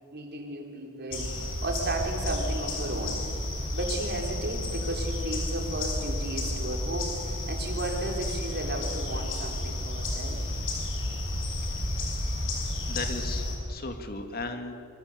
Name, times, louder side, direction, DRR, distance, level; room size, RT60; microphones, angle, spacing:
voice 1, 0.1-3.2 3.7-10.4, right 2 dB, 50° right, 2 dB, 4.5 m, -34 dB
sound 1, 1.1-13.6, left 1 dB, 60° left, 6.7 m, -31 dB
voice 2, 12.9-14.7, left 3 dB, 45° left, 6 dB, 2.3 m, -36 dB
26.5 x 25.5 x 8.3 m, 2.4 s
head